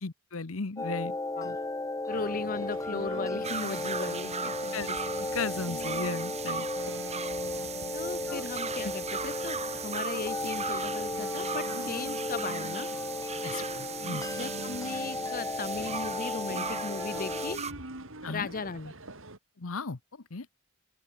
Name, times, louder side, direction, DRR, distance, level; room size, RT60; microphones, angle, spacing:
voice 1, 0.0-1.6 4.7-6.7 8.3-8.4 8.8-8.9 13.4-14.2 18.2-18.5 19.6-20.5, left 4 dB, 75° left, 1.0 m, -36 dB
sound 1, 0.8-17.6, left 2 dB, 15° left, 0.9 m, -35 dB
voice 2, 2.1-4.5 7.9-12.9 14.3-17.6 18.3-18.9, left 4 dB, 40° left, 0.7 m, -37 dB
sound 2, 2.1-19.4, right 2 dB, 65° right, 4.9 m, -45 dB
sound 3, 3.4-17.7, right 6 dB, 30° right, 3.4 m, -38 dB
open air
head